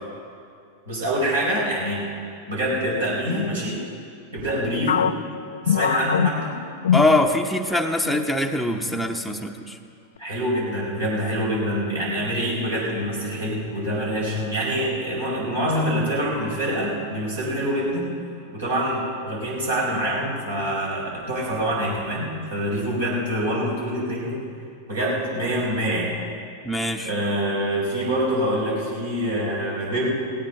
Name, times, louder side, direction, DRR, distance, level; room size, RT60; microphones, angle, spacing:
voice 1, 0.9-2.1 2.5-3.8 4.3-5.1 5.6-6.5 10.2-18.1 18.5-24.4 24.9-26.1 27.0-30.1, equal, 70° right, -4 dB, 4.9 m, -25 dB
sound 1, 4.9-7.7 8.0-8.3 8.9-9.4, left 9 dB, 65° left, 0.4 m, -24 dB
voice 2, 6.9-9.8 26.6-27.1, left 1 dB, ahead, 5 dB, 0.9 m, -23 dB
18.0 x 17.0 x 3.8 m, 2.4 s
figure-of-eight pair, 90°, 0 cm